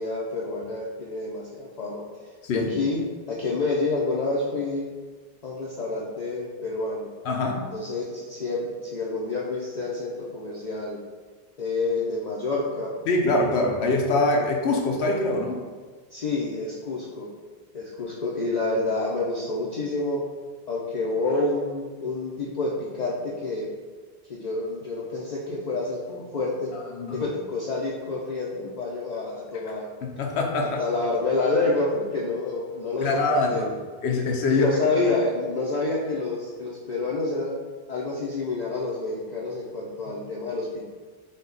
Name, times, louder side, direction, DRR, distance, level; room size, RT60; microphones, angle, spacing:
voice 1, 0.0-2.0 2.5-3.0 3.3-4.9 5.4-7.1 7.7-11.0 11.6-12.9 16.1-17.3 17.7-20.2 20.7-23.7 24.3-26.7 27.1-29.9 30.6-33.6 34.1-37.6 37.9-40.9, left 3 dB, 50° left, -5 dB, 0.6 m, -28 dB
voice 2, 7.2-7.6 13.1-15.6 26.9-27.2 30.0-30.8 33.0-33.7 34.0-34.7, left 2 dB, 85° left, 1 dB, 1.0 m, -24 dB
5.3 x 2.3 x 3.9 m, 1.5 s
omnidirectional pair, 1.1 m